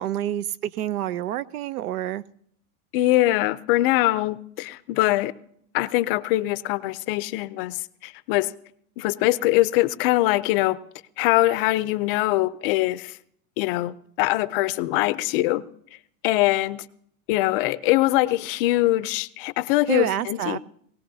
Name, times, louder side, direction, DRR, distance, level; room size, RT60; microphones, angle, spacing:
voice 1, 0.0-2.2 19.9-20.6, right 12 dB, 90° right, 18 dB, 0.7 m, -28 dB
voice 2, 2.9-5.3 5.7-7.8 8.0-8.5 9.0-10.8 11.2-13.1 13.6-15.6 16.2-16.8 17.3-20.6, left 17 dB, 40° left, 16 dB, 0.5 m, -22 dB
20.5 x 17.5 x 2.7 m, 0.68 s
supercardioid pair, 140°, 43 cm